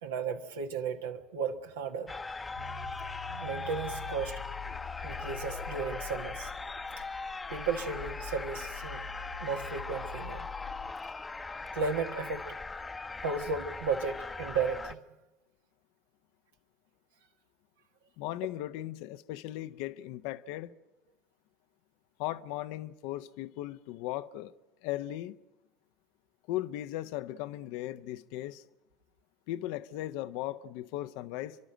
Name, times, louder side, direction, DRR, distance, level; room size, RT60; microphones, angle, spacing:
voice 1, 0.0-2.1 3.4-4.3 5.0-6.5 7.5-9.0 9.4-10.5 11.7-12.5 13.2-15.0, right 5 dB, 75° right, 1.4 m, -34 dB
sound 1, 2.1-14.9, left 3 dB, 20° left, 0.9 m, -40 dB
sound 2, 2.5-10.9, left 5 dB, 75° left, 1.3 m, -45 dB
voice 2, 18.2-20.7 22.2-24.5 24.8-25.4 26.5-28.6 29.5-31.6, left 14 dB, 60° left, 0.7 m, -37 dB
29.5 x 12.0 x 9.0 m
figure-of-eight pair, 65°, 0 cm